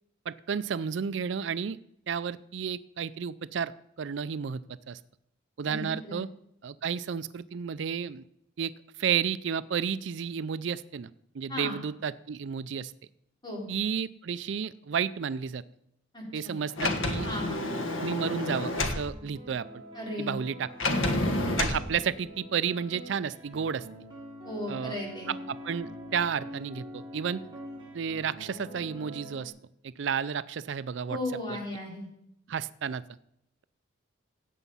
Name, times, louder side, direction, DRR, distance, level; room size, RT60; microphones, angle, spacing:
voice 1, 0.3-1.8 2.1-3.7 4.0-4.6 4.9-5.0 5.6-6.3 6.6-8.2 8.6-8.7 9.0-11.1 11.3-12.9 13.7-15.6 16.3-17.3 18.0-19.7 20.2-20.7 21.6-23.9 24.7-25.0 25.3-27.4 27.9-29.5 29.8-31.2 32.5-33.0, right 7 dB, 65° right, 15 dB, 0.4 m, -32 dB
voice 2, 5.7-6.2 11.5-11.8 13.4-13.7 16.1-16.5 17.2-17.7 19.9-20.4 24.4-25.3 31.1-32.1, left 1 dB, 20° left, -2 dB, 4.1 m, -36 dB
Sliding door, 16.8-19.0 20.8-21.8, left 2 dB, 80° left, 1.4 m, -29 dB
sound 1, 18.7-29.5, equal, 25° right, 3.4 m, -45 dB
16.5 x 8.2 x 5.5 m, 0.76 s
head